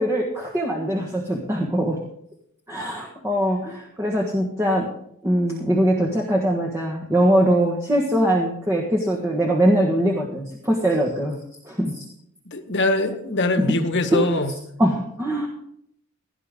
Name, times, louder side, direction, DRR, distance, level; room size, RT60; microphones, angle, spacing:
voice 1, 0.0-2.0 2.7-4.9 5.2-11.4 11.6-12.0 13.6-13.7 14.1-14.4 14.8-15.5, right 1 dB, 15° right, -1 dB, 1.5 m, -22 dB
voice 2, 12.5-14.5, left 2 dB, 55° left, 6 dB, 1.6 m, -23 dB
17.0 x 11.0 x 3.7 m, 0.71 s
head